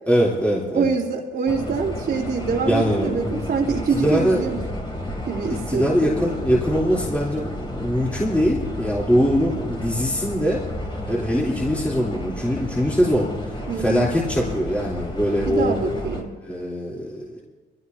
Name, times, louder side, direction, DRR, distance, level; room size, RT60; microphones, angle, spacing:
voice 1, 0.1-0.9 2.6-3.5 4.0-4.5 5.7-10.6 11.1-13.3 13.8-15.7 16.4-17.4, equal, 5° left, -5 dB, 3.5 m, -22 dB
voice 2, 0.7-4.6 5.3-6.2 13.7-14.1 15.5-16.4, right 5 dB, 55° right, -7 dB, 3.0 m, -25 dB
sound 1, 1.5-16.2, left 1 dB, 25° left, 3.3 m, -32 dB
23.0 x 17.0 x 2.8 m, 1.5 s
cardioid pair, 90°, 20 cm